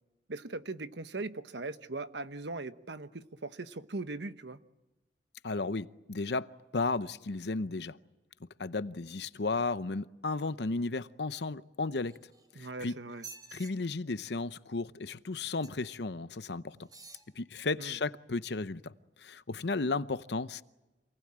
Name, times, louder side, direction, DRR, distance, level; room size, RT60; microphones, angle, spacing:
voice 1, 0.3-4.6 12.5-13.2 17.8-18.0, right 3 dB, 75° right, 1.1 m, -40 dB
voice 2, 5.4-8.0 8.6-12.2 12.5-13.0 13.5-16.8 17.3-18.9 19.2-20.6, left 3 dB, 65° left, 0.8 m, -34 dB
sound 1, 12.0-12.7 13.1-13.7 15.6-16.0 16.8-17.3 17.9-18.0, right 4 dB, 20° right, 3.6 m, -50 dB
27.5 x 19.5 x 8.8 m
head